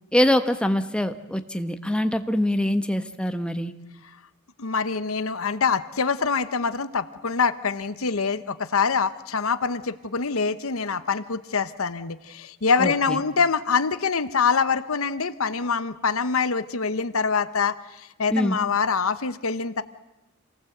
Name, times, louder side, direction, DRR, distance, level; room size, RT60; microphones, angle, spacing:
voice 1, 0.1-3.7 12.8-13.2 18.3-18.6, left 1 dB, 5° left, 8 dB, 1.2 m, -24 dB
voice 2, 4.6-19.8, left 5 dB, 75° left, 13 dB, 1.0 m, -25 dB
27.5 x 19.0 x 8.0 m, 1.0 s
head